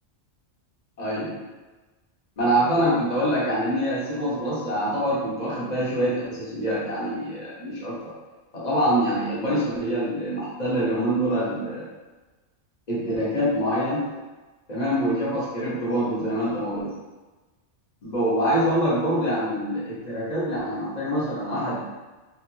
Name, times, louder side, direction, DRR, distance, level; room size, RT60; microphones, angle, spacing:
voice 1, 1.0-1.4 2.4-8.1 8.5-11.9 12.9-14.1 14.7-16.9 18.0-21.8, equal, 40° left, -8 dB, 0.9 m, -25 dB
3.2 x 2.4 x 3.1 m, 1.2 s
omnidirectional pair, 1.2 m